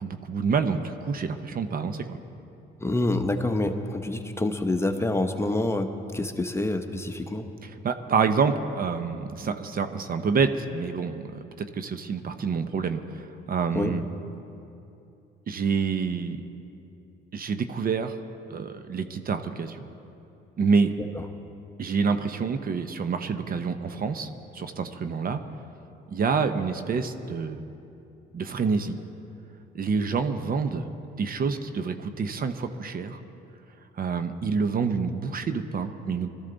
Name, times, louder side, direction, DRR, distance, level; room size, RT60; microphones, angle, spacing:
voice 1, 0.0-2.2 7.6-14.0 15.5-16.4 17.3-18.2 18.5-19.9 20.6-20.9 21.8-25.4 26.1-27.6 28.3-29.0 29.7-30.9 31.2-33.2 34.0-36.3, right 5 dB, 50° right, 9 dB, 0.9 m, -27 dB
voice 2, 2.8-7.4 13.7-13.9, left 2 dB, 15° left, 6 dB, 1.0 m, -27 dB
21.0 x 13.5 x 4.0 m, 2.8 s
supercardioid pair, 75°, 20 cm